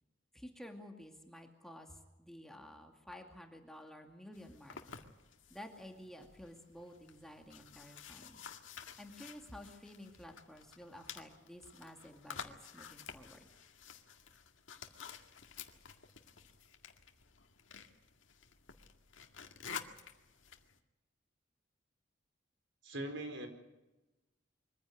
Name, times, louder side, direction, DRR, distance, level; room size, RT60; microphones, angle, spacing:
voice 1, 0.3-4.8 5.5-8.5 9.0-13.5, left 1 dB, ahead, 3 dB, 2.3 m, -52 dB
sound 1, 4.3-20.8, left 6 dB, 90° left, 2.0 m, -52 dB
voice 2, 22.8-23.5, right 1 dB, 75° right, 6 dB, 4.4 m, -41 dB
24.0 x 15.5 x 9.6 m, 1.0 s
head